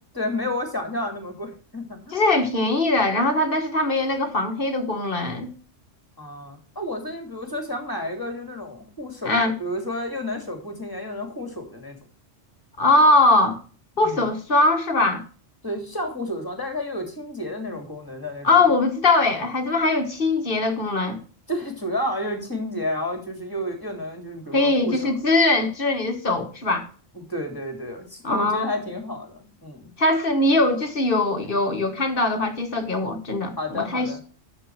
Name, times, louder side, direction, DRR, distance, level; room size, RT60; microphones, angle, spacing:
voice 1, 0.1-2.2 6.2-12.0 14.0-14.3 15.6-18.6 21.5-25.1 27.3-29.9 33.6-34.2, left 1 dB, 15° left, 2.8 m, -31 dB
voice 2, 2.1-5.5 9.2-9.5 12.8-13.6 14.0-15.2 18.4-21.2 24.5-26.9 28.2-28.7 30.0-34.2, left 2 dB, 45° left, 1.7 m, -21 dB
11.5 x 6.9 x 4.7 m
omnidirectional pair, 1.3 m